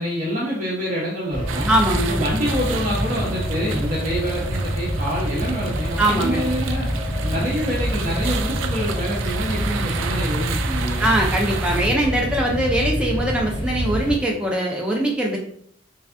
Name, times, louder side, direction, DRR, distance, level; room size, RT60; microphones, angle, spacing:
voice 1, 0.0-1.7 2.1-6.9 7.2-11.1, equal, 45° right, -6 dB, 0.7 m, -26 dB
sound 1, 1.3-14.2, equal, 25° left, 0.8 m, -26 dB
sound 2, 1.5-11.9, right 7 dB, 75° right, 0.3 m, -33 dB
voice 2, 1.7-2.2 6.0-6.4 11.0-15.4, right 1 dB, 5° right, -2 dB, 0.4 m, -21 dB
3.4 x 3.2 x 2.5 m, 0.64 s
head